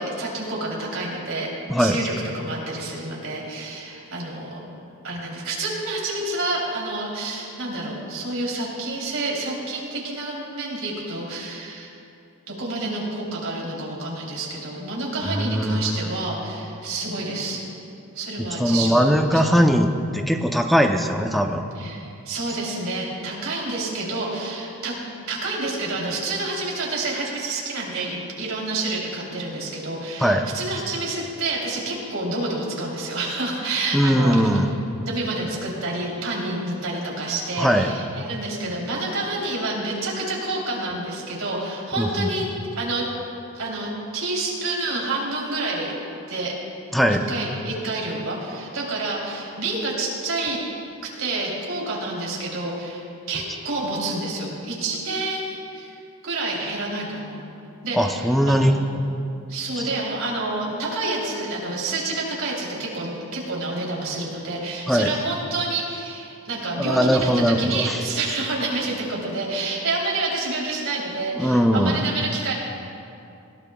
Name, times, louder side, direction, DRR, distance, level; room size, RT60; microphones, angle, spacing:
voice 1, 0.0-1.5 1.8-4.6 5.0-11.9 12.5-17.6 18.1-19.0 19.3-19.4 21.7-25.0 25.3-34.6 35.0-42.5 42.8-43.1 43.5-45.9 46.3-46.6 47.3-50.6 51.0-56.0 56.2-57.4 57.8-58.9 59.5-72.5, right 2 dB, 70° right, -3 dB, 3.2 m, -28 dB
voice 2, 15.2-16.1 18.6-21.7 30.2-30.5 33.9-34.8 37.6-37.9 42.0-42.3 46.9-47.2 57.9-58.8 59.7-59.9 64.9-65.1 66.8-68.0 71.4-72.0, equal, ahead, 4 dB, 0.5 m, -20 dB
20.5 x 15.5 x 2.3 m, 2.6 s
head